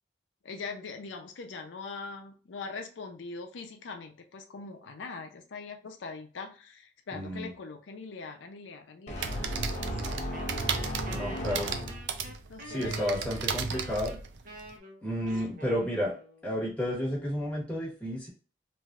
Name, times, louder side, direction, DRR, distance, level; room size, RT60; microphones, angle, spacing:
voice 1, 0.4-10.3 11.2-11.8 12.5-13.2 15.3-15.6, left 4 dB, 85° left, 4 dB, 0.5 m, -42 dB
voice 2, 7.1-7.5 11.1-11.7 12.6-14.2 15.0-16.1 16.4-18.3, equal, 5° left, -5 dB, 1.2 m, -31 dB
sound 1, 9.1-12.3, equal, 40° left, 0.7 m, -36 dB
sound 2, 9.1-14.7, right 5 dB, 75° right, 0.4 m, -35 dB
Wind instrument woodwind instrument, 10.3-16.6, equal, 45° right, 0.8 m, -46 dB
3.2 x 2.6 x 2.3 m, 0.38 s
head